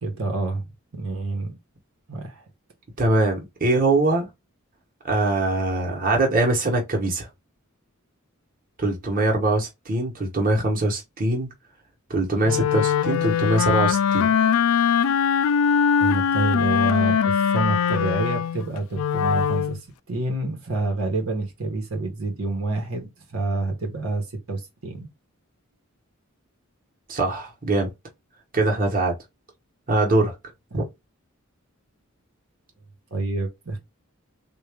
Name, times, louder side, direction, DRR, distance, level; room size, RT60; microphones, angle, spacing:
voice 1, 0.0-1.5 2.1-2.4 16.0-19.8 20.1-25.1 30.7-30.8 33.1-33.8, right 2 dB, 85° right, 1.2 m, -28 dB
voice 2, 3.0-4.3 5.0-7.3 8.8-11.5 12.1-14.3 27.1-27.9 28.5-29.1 29.9-30.3 30.7-30.8, right 2 dB, 40° right, 1.1 m, -22 dB
Wind instrument woodwind instrument, 12.4-19.8, left 7 dB, 85° left, 0.3 m, -21 dB
3.6 x 2.5 x 3.4 m
head